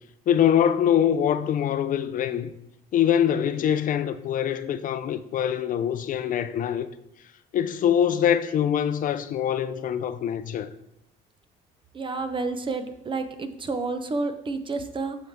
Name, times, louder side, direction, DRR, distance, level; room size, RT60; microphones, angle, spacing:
voice 1, 0.3-2.5 2.9-6.9 7.5-10.7, left 9 dB, 55° left, 0.5 m, -24 dB
voice 2, 11.9-15.2, right 3 dB, 30° right, 0.8 m, -30 dB
8.8 x 6.5 x 3.6 m
cardioid pair, 110°, 17 cm